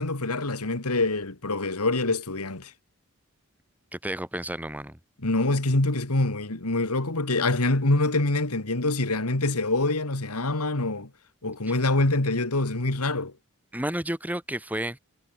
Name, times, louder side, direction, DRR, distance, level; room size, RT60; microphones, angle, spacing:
voice 1, 0.0-2.7 5.2-11.1 11.4-13.3, left 2 dB, 90° left, 2.5 m, -25 dB
voice 2, 3.9-5.0 13.7-15.0, right 1 dB, 5° right, 3.4 m, -31 dB
head